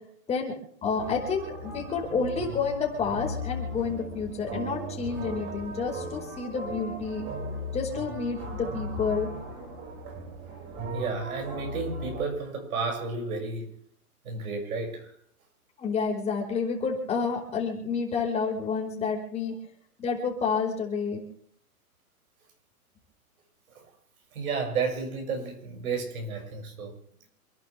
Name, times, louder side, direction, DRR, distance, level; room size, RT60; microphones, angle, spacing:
voice 1, 0.8-7.2 7.7-9.3 15.8-19.5 20.0-21.2, left 5 dB, 15° left, 1 dB, 4.8 m, -29 dB
sound 1, 1.0-12.2, equal, 35° right, 6.0 m, -37 dB
voice 2, 10.9-13.7 14.2-15.1 24.3-26.9, right 4 dB, 70° right, 2 dB, 6.6 m, -32 dB
28.0 x 11.5 x 3.4 m, 0.63 s
hypercardioid pair, 145°, 45 cm